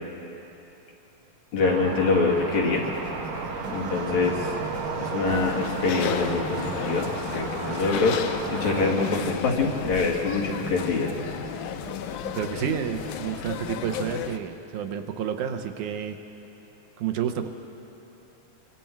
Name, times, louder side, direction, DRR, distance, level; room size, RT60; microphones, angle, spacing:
voice 1, 1.5-2.8 3.7-4.6 5.0-8.2 8.5-11.1, left 3 dB, 65° left, -2 dB, 3.5 m, -25 dB
sound 1, 1.6-8.9, right 4 dB, 65° right, 2.9 m, -33 dB
sound 2, 2.5-14.2, right 1 dB, 5° right, 2.9 m, -41 dB
sound 3, 5.3-14.4, left 9 dB, 85° left, 2.2 m, -33 dB
voice 2, 12.3-16.2 17.0-17.5, right 8 dB, 85° right, 5 dB, 2.4 m, -30 dB
25.0 x 24.0 x 4.6 m, 2.9 s
omnidirectional pair, 3.5 m